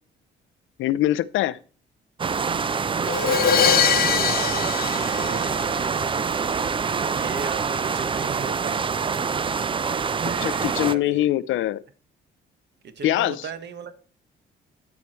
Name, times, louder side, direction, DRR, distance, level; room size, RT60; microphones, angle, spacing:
voice 1, 0.8-1.6 10.4-11.8 13.0-13.5, left 14 dB, 85° left, 0.5 m, -23 dB
sound 1, 2.2-10.9, right 5 dB, 25° right, 0.4 m, -25 dB
Crash cymbal, 3.1-6.0, left 8 dB, 50° left, 0.9 m, -22 dB
voice 2, 3.2-5.6 7.1-8.9 10.2-11.3 12.8-13.9, right 5 dB, 60° right, 1.3 m, -37 dB
12.5 x 4.8 x 4.3 m
cardioid pair, 90°, 20 cm